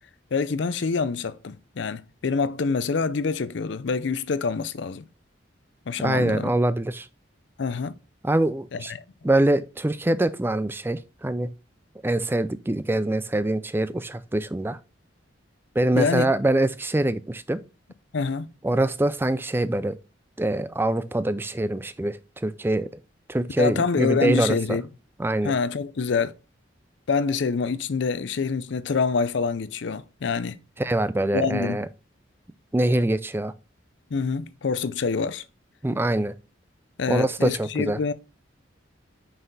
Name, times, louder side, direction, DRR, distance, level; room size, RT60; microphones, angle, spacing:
voice 1, 0.3-5.0 5.9-6.5 7.6-7.9 8.7-9.0 15.9-16.3 18.1-18.5 23.6-24.8 25.4-26.3 27.1-30.6 31.3-31.8 34.1-35.4 37.0-38.1, left 5 dB, 65° left, 0.5 m, -26 dB
voice 2, 6.0-7.1 8.2-8.9 9.2-11.5 12.0-14.8 15.8-17.6 18.6-20.0 20.4-22.9 23.3-24.8 25.2-25.6 30.8-31.9 32.7-33.5 35.8-36.3 37.1-38.0, right 1 dB, 10° right, 0.3 m, -24 dB
5.7 x 5.5 x 4.0 m
head